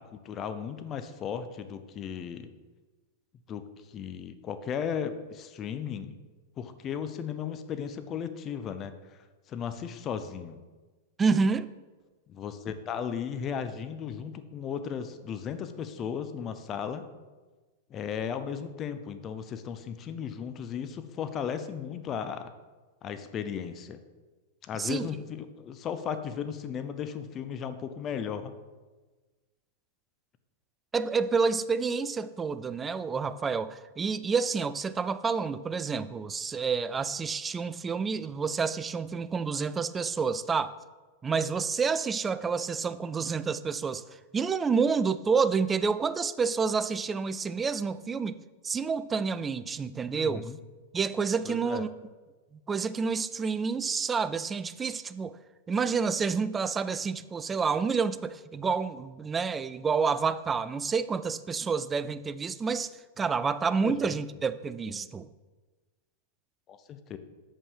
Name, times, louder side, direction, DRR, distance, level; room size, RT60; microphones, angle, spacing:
voice 1, 0.1-2.5 3.5-3.6 3.9-6.2 6.6-8.9 9.5-10.6 12.3-17.0 17.9-22.5 23.0-24.0 24.6-28.5 50.1-50.6 51.4-51.9 63.8-64.1 65.0-65.1 66.7-67.2, left 7 dB, 30° left, 0.6 m, -35 dB
voice 2, 11.2-11.7 24.8-25.1 30.9-40.7 41.2-48.4 48.6-50.5 50.9-51.9 52.7-55.4 55.7-62.9 63.2-65.3, right 5 dB, 20° right, 0.3 m, -29 dB
7.3 x 5.4 x 4.9 m
hypercardioid pair, 115°, 0 cm